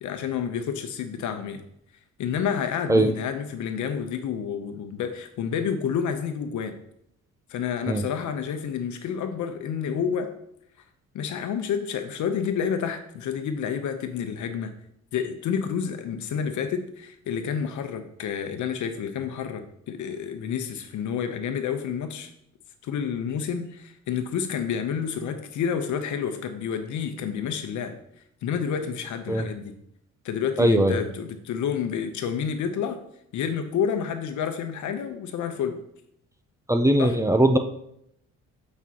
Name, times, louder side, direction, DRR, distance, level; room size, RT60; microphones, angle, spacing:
voice 1, 0.0-1.6 2.2-6.7 7.5-10.3 11.1-14.7 15.1-22.3 22.8-28.0 28.4-29.7 30.2-33.0 33.3-35.8 37.0-37.1, left 7 dB, 75° left, 7 dB, 0.9 m, -29 dB
voice 2, 30.6-31.0 36.7-37.6, right 1 dB, 10° right, 6 dB, 0.6 m, -19 dB
8.2 x 5.3 x 3.0 m, 0.74 s
cardioid pair, 90°, 30 cm